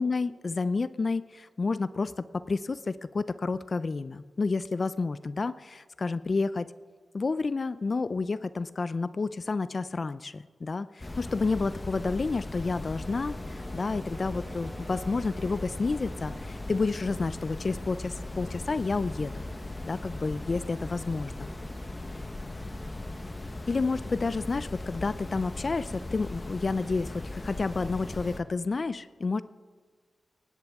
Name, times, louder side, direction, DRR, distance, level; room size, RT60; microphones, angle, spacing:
voice 1, 0.0-6.7 7.1-19.3 19.8-21.3 22.2-22.3 23.7-29.4, left 4 dB, 45° left, 15 dB, 0.4 m, -30 dB
sound 1, 11.0-28.4, left 2 dB, 25° left, 1.0 m, -38 dB
Electric guitar, 12.9-20.7, right 2 dB, 60° right, 3.4 m, -52 dB
sound 2, 16.0-23.0, right 3 dB, 45° right, 0.9 m, -56 dB
18.5 x 16.5 x 3.6 m, 1.5 s
cardioid pair, 85°, 0 cm